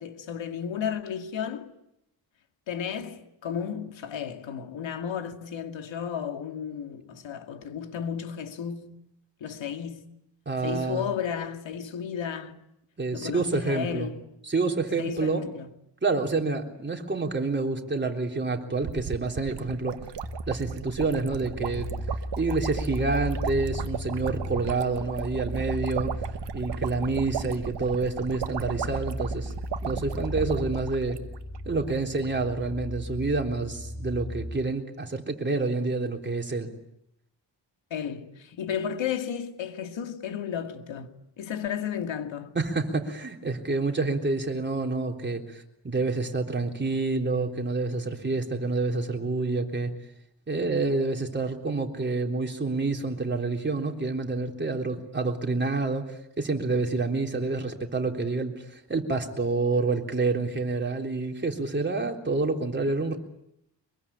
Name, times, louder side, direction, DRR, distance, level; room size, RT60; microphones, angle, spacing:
voice 1, 0.0-1.7 2.7-9.0 9.4-10.1 10.6-12.6 13.1-14.2 15.0-15.7 37.9-42.6, left 8 dB, 85° left, 2.3 m, -33 dB
voice 2, 10.5-11.1 13.0-14.1 14.5-15.4 16.0-20.0 20.5-21.9 22.4-26.1 26.5-29.5 29.8-31.2 31.7-36.7 42.6-49.9 50.5-63.2, right 3 dB, 25° right, 3.6 m, -28 dB
sound 1, 18.8-31.6 31.9-32.0 32.2-32.4, right 9 dB, 70° right, 1.4 m, -36 dB
sound 2, 20.2-34.5, left 1 dB, 15° left, 1.4 m, -36 dB
24.0 x 22.5 x 10.0 m
wide cardioid pair, 110°, 44 cm